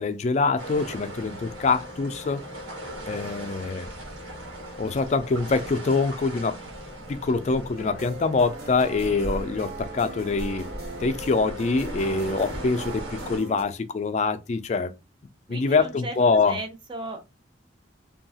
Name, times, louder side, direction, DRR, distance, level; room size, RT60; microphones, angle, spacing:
voice 1, 0.0-2.4 3.1-3.9 4.8-6.6 7.1-10.7 11.0-14.9 15.5-16.6, left 4 dB, 35° left, 0.3 m, -24 dB
sound 1, 0.6-13.4, right 1 dB, 85° right, 1.3 m, -38 dB
sound 2, 7.7-13.6, right 2 dB, 55° right, 1.2 m, -40 dB
voice 2, 15.5-16.1 16.5-17.2, right 2 dB, 25° right, 0.6 m, -35 dB
2.8 x 2.3 x 2.7 m
head